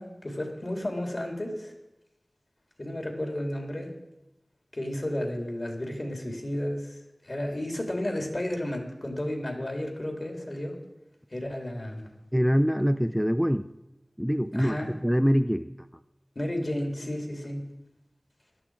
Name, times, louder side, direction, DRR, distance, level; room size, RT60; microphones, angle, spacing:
voice 1, 0.0-1.7 2.8-3.9 4.7-10.8 11.3-12.1 14.5-14.9 16.3-17.7, left 1 dB, 50° left, 2 dB, 3.1 m, -32 dB
voice 2, 12.3-13.7 14.2-15.7, equal, ahead, 10 dB, 0.5 m, -24 dB
16.5 x 12.0 x 4.8 m, 0.95 s
wide cardioid pair, 55°, 0 cm